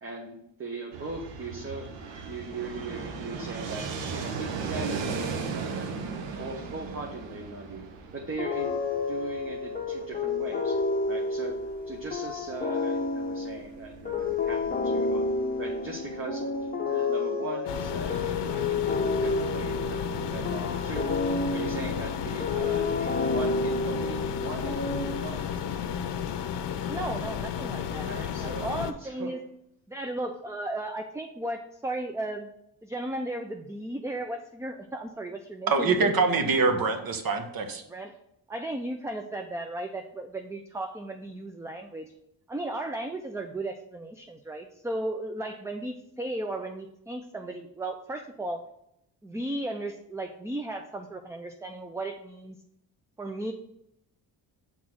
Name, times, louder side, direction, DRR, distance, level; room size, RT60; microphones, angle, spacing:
voice 1, 0.0-6.0 6.3-7.8 8.1-10.8 11.1-15.2 15.6-26.1 27.9-28.7 29.0-29.3, right 3 dB, 30° right, 0 dB, 1.0 m, -39 dB
Fixed-wing aircraft airplane, 0.9-16.6, right 5 dB, 85° right, 1.0 m, -38 dB
sound 1, 8.4-25.6, left 3 dB, 20° left, 0.8 m, -30 dB
sound 2, 17.7-28.9, left 8 dB, 75° left, 0.6 m, -33 dB
voice 2, 26.9-28.1 28.4-29.4 29.9-32.5 32.8-36.1 37.9-38.2 38.5-42.1 42.5-48.6 49.2-52.6 53.2-53.5, right 1 dB, 5° right, 5 dB, 0.3 m, -35 dB
voice 3, 35.7-37.8, right 4 dB, 55° right, 6 dB, 1.1 m, -24 dB
6.1 x 3.7 x 6.0 m, 0.79 s
cardioid pair, 105°, 42 cm